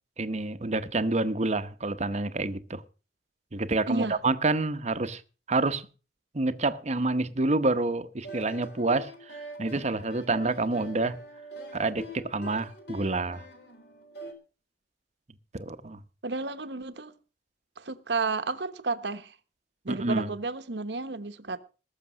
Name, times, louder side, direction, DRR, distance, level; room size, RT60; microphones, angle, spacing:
voice 1, 0.2-2.8 3.5-5.2 5.5-5.9 6.3-11.2 11.7-13.5 15.5-16.0 19.9-20.3, right 2 dB, 40° right, 0.9 m, -28 dB
voice 2, 3.9-4.2 10.3-10.6 16.2-17.1 17.8-19.3 19.8-21.6, right 3 dB, 70° right, 1.1 m, -32 dB
sound 1, 8.2-14.3, right 1 dB, 65° left, 3.6 m, -44 dB
20.0 x 6.7 x 6.2 m
head